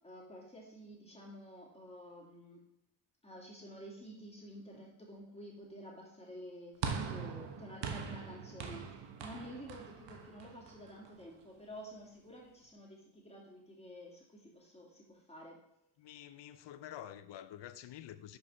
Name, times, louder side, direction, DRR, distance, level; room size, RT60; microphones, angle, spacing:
voice 1, 0.0-2.6 3.2-15.6, equal, 15° left, 2.5 m, -51 dB
sound 1, 6.8-11.2, right 6 dB, 60° right, 1.1 m, -42 dB
voice 2, 16.0-18.4, left 11 dB, 65° left, 0.7 m, -48 dB
6.5 x 5.1 x 5.5 m
cardioid pair, 90°, 47 cm